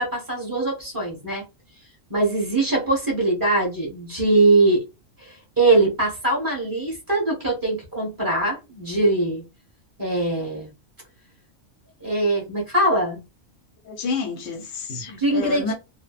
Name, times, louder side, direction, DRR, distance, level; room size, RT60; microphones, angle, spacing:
voice 1, 0.0-1.4 2.1-4.8 5.2-9.4 10.0-10.7 12.0-13.2 15.1-15.7, right 2 dB, 15° right, 1.2 m, -22 dB
voice 2, 13.8-15.7, left 5 dB, 90° left, 1.0 m, -29 dB
3.1 x 2.1 x 2.4 m
omnidirectional pair, 1.3 m